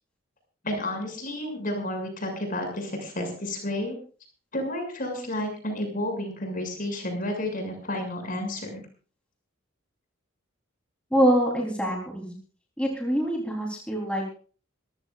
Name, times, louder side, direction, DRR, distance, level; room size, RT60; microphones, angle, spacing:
voice 1, 0.6-4.0 4.5-8.8, left 1 dB, 40° left, 4 dB, 6.8 m, -31 dB
voice 2, 11.1-12.3 12.8-14.3, equal, 5° left, -1 dB, 3.8 m, -25 dB
26.0 x 15.5 x 2.5 m, 0.39 s
head